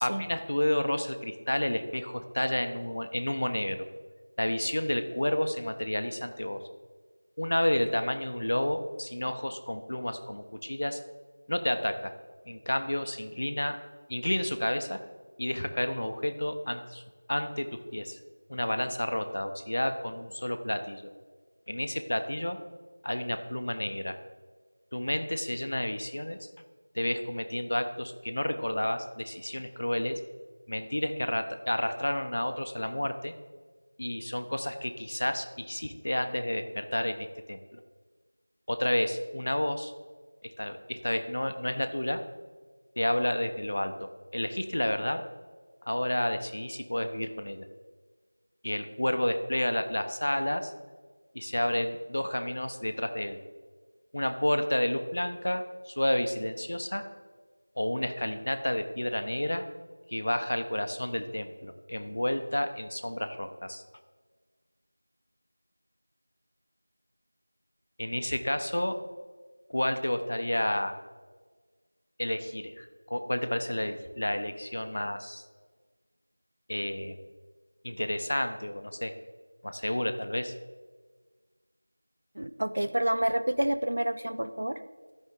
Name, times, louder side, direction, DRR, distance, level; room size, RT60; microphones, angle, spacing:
voice 1, 0.0-3.8 4.4-6.6 7.4-11.0 11.5-12.1 12.5-13.8 14.1-15.0 15.4-17.0 17.3-18.2 18.5-21.1 21.7-22.6 23.0-24.2 24.9-26.5 26.9-30.2 30.7-33.3 34.0-37.8 38.7-39.9 40.4-42.2 43.0-45.2 45.9-47.7 48.6-50.7 51.3-53.4 54.1-57.0 57.8-59.6 60.1-63.8 68.0-69.0 69.7-70.9 72.2-75.4 76.7-77.2 77.8-79.1 79.6-80.5, left 1 dB, 40° left, 8 dB, 0.6 m, -30 dB
voice 2, 82.4-84.8, right 1 dB, 45° right, 12 dB, 0.4 m, -28 dB
13.0 x 5.3 x 3.6 m, 1.5 s
figure-of-eight pair, 180°, 0 cm